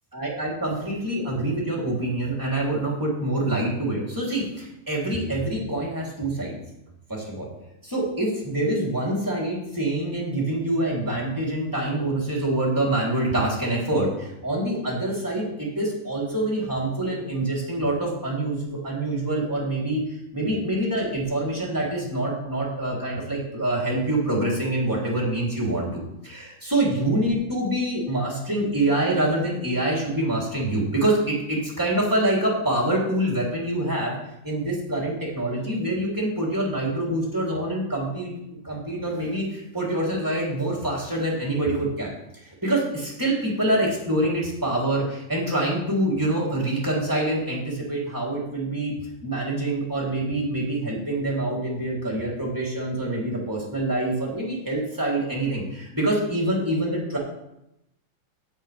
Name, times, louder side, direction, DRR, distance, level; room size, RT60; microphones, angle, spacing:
voice 1, 0.1-6.5 7.1-7.5 7.8-20.0 20.3-25.9 26.2-34.1 34.4-38.3 38.6-42.1 42.4-48.9 49.2-57.2, right 1 dB, 5° right, -5 dB, 2.8 m, -25 dB
17.0 x 7.4 x 3.5 m, 0.86 s
omnidirectional pair, 4.2 m